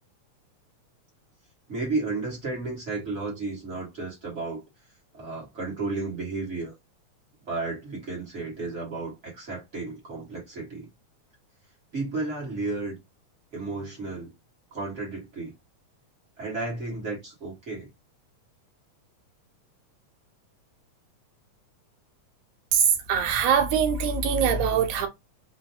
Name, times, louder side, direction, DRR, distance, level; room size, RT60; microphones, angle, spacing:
voice 1, 1.7-4.6 5.1-6.7 7.5-10.9 11.9-13.0 13.5-14.3 14.7-15.5 16.4-17.9, right 3 dB, 35° right, 1.2 m, -33 dB
voice 2, 22.7-25.1, right 7 dB, 85° right, 2.1 m, -23 dB
5.0 x 2.3 x 2.7 m
omnidirectional pair, 3.4 m